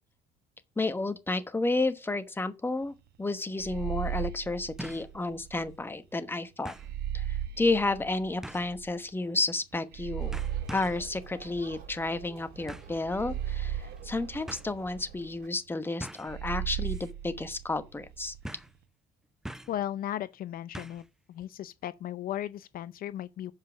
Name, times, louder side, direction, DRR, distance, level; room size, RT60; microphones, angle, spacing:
voice 1, 0.8-6.7 7.1-10.3 10.7-18.3, left 2 dB, 15° left, 1.1 m, -31 dB
sound 1, 2.9-3.0 4.8-5.1 5.6-5.7 6.6-6.9 8.4-8.8 9.7-10.0 10.3-11.1 12.7-13.0 14.0-14.1 14.5-14.7 16.0-16.4 16.8-17.1 17.4-17.5 18.4-18.8 19.4-19.8 20.7-21.1 21.4-21.5, right 1 dB, 5° right, 0.5 m, -43 dB
sound 2, 3.6-5.8 6.8-8.9 9.9-12.3 13.1-15.3 16.3-18.4, right 10 dB, 70° right, 1.1 m, -37 dB
sound 3, 10.2-15.5, right 6 dB, 55° right, 3.2 m, -49 dB
voice 2, 19.7-21.0 21.3-23.5, left 11 dB, 60° left, 0.6 m, -36 dB
7.4 x 5.5 x 6.2 m
cardioid pair, 110°, 17 cm